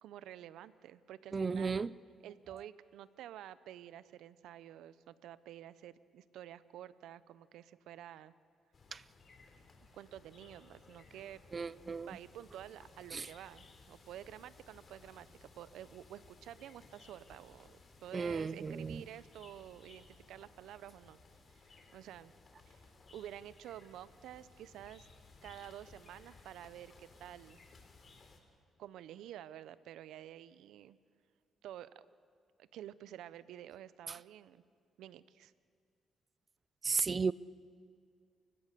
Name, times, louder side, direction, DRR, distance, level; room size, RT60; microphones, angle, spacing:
voice 1, 0.0-1.8 2.2-8.3 9.9-11.4 11.9-21.2 21.5-22.3 22.7-22.8 23.1-25.1 25.4-27.6 28.8-31.0 31.6-32.0 32.6-34.6 35.0-35.5, right 11 dB, 85° right, 0.7 m, -50 dB
voice 2, 1.3-1.9 8.9-9.0 11.5-12.2 13.1-13.3 18.1-19.0 34.1-34.2 36.8-37.3, right 5 dB, 35° right, 0.5 m, -34 dB
sound 1, 8.7-28.4, left 3 dB, 40° left, 3.1 m, -60 dB
29.5 x 16.0 x 6.7 m
cardioid pair, 90°, 0 cm